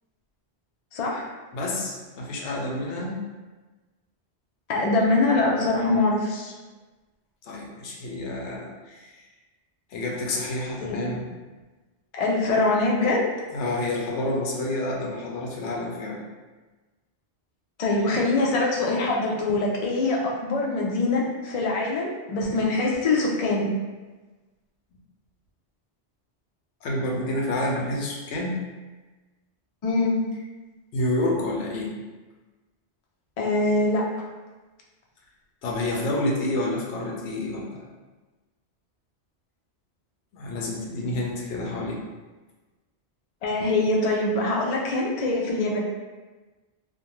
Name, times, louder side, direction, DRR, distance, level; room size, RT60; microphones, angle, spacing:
voice 1, 0.9-1.2 4.7-6.5 10.8-11.0 12.1-13.3 17.8-23.7 29.8-30.2 33.4-34.0 43.4-45.8, left 2 dB, 55° left, -2 dB, 0.4 m, -23 dB
voice 2, 1.5-3.2 7.4-9.2 9.9-11.3 13.5-16.2 26.8-28.6 30.9-31.9 35.6-37.8 40.3-42.0, left 1 dB, 90° left, -2 dB, 0.9 m, -29 dB
2.5 x 2.1 x 2.9 m, 1.2 s
omnidirectional pair, 1.2 m